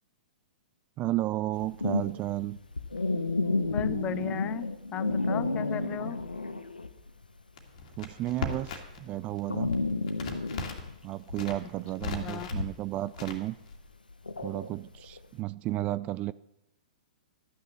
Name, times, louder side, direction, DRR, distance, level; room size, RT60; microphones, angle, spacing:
voice 1, 1.0-2.6 8.0-9.7 11.0-13.5 14.4-16.3, right 16 dB, 30° right, 17 dB, 0.3 m, -33 dB
sound 1, 1.5-7.1 7.4-15.2, left 3 dB, 90° left, 0.8 m, -32 dB
voice 2, 3.7-6.2 12.2-12.5, left 11 dB, 25° left, 17 dB, 0.5 m, -36 dB
Crackle, 7.6-9.0 9.3-10.9 11.3-12.6 13.1-13.7, left 4 dB, 55° left, 2.0 m, -37 dB
12.5 x 6.6 x 7.5 m, 0.88 s
figure-of-eight pair, 115°, 5 cm